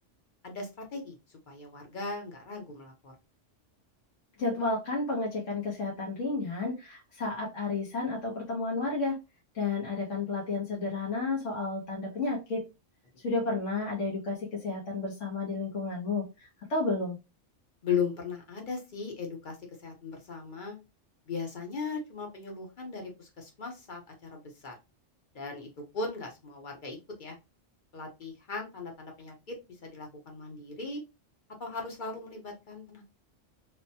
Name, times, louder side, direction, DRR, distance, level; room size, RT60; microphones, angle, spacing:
voice 1, 0.4-1.2 1.5-3.1 17.8-19.6 19.8-20.8 21.3-24.7 25.3-27.4 27.9-29.6 29.8-31.0 31.6-33.0, left 5 dB, 45° left, 1 dB, 0.9 m, -37 dB
voice 2, 4.4-9.2 9.5-12.6 13.2-17.2, left 3 dB, 80° left, -2 dB, 1.2 m, -32 dB
3.3 x 2.1 x 2.7 m, 0.26 s
omnidirectional pair, 1.3 m